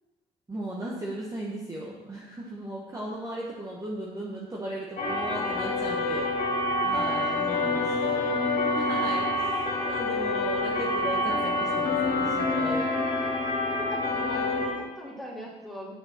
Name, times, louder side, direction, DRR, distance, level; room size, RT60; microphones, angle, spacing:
voice 1, 0.5-6.3 6.8-8.0 8.5-12.9, right 1 dB, 20° right, -4 dB, 1.3 m, -37 dB
voice 2, 3.0-3.4 6.0-6.2 7.3-8.7 13.6-15.9, equal, ahead, -4 dB, 2.5 m, -43 dB
sound 1, 5.0-14.7, left 2 dB, 55° left, 2.5 m, -27 dB
8.8 x 6.4 x 4.3 m, 1.1 s
cardioid pair, 110°, 17 cm